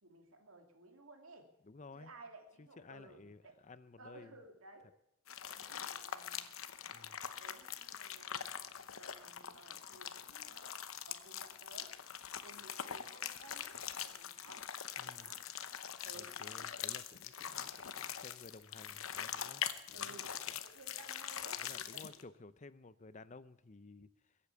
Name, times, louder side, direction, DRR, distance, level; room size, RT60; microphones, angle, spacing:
voice 1, 0.0-1.5 1.9-3.6 4.0-4.9 5.4-6.4 7.4-8.4 8.9-10.8 11.0-12.0 12.4-14.7 15.2-15.5 16.0-16.6 19.9-22.3, right 2 dB, 85° right, 4 dB, 2.7 m, -57 dB
voice 2, 1.7-2.1 2.6-4.4 6.9-7.2 15.0-15.3 16.1-19.6 19.9-20.2 21.6-24.4, left 3 dB, 35° left, 15 dB, 0.6 m, -55 dB
sound 1, 5.3-22.2, left 9 dB, 80° left, 0.9 m, -43 dB
21.5 x 8.5 x 7.2 m, 0.81 s
head